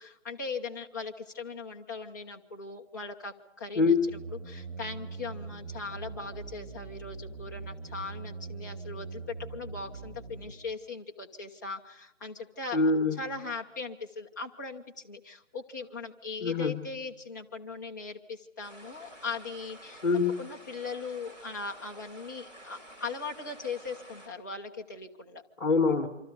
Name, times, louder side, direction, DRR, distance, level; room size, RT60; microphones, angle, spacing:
voice 1, 0.0-12.8 13.2-20.0 20.4-25.4, left 4 dB, 15° left, -1 dB, 0.8 m, -39 dB
sound 1, 4.1-10.5, right 4 dB, 75° right, 6.4 m, -42 dB
voice 2, 12.7-13.2 16.4-16.8 20.0-20.4 25.6-26.1, left 4 dB, 35° left, 6 dB, 2.0 m, -24 dB
sound 2, 18.6-24.3, right 1 dB, 15° right, 3.7 m, -50 dB
27.5 x 25.0 x 5.3 m, 0.93 s
figure-of-eight pair, 160°, 38 cm